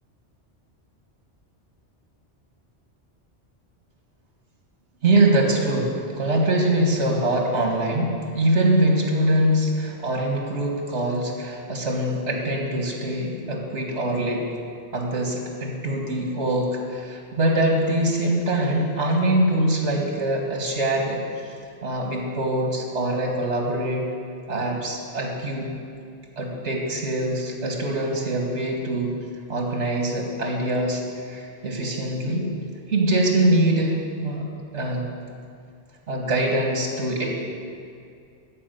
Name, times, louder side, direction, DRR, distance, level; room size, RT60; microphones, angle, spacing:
voice 1, 5.0-14.4 14.9-21.5 21.8-24.1 24.5-25.7 26.4-29.1 29.5-32.5 32.9-35.1 36.1-37.3, right 1 dB, 75° right, 0 dB, 2.0 m, -23 dB
13.5 x 5.1 x 9.2 m, 2.3 s
omnidirectional pair, 1.2 m